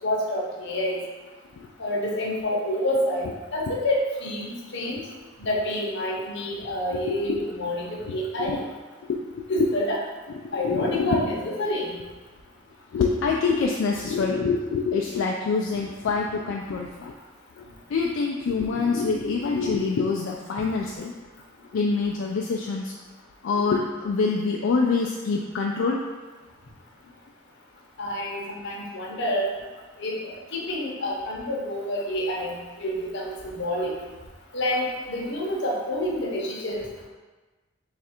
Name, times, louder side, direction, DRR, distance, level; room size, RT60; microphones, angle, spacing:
voice 1, 0.0-1.0 1.8-5.0 5.4-8.7 9.5-10.0 10.5-11.9 28.0-29.5 30.0-34.0 34.5-37.1, left 1 dB, 65° left, -2 dB, 0.7 m, -28 dB
voice 2, 6.9-7.4 8.4-8.6 9.1-9.4 10.6-11.2 12.9-17.1 17.6-21.1 21.7-22.9 23.4-26.0, left 4 dB, 80° left, 0 dB, 0.3 m, -25 dB
3.3 x 2.4 x 4.3 m, 1.3 s
head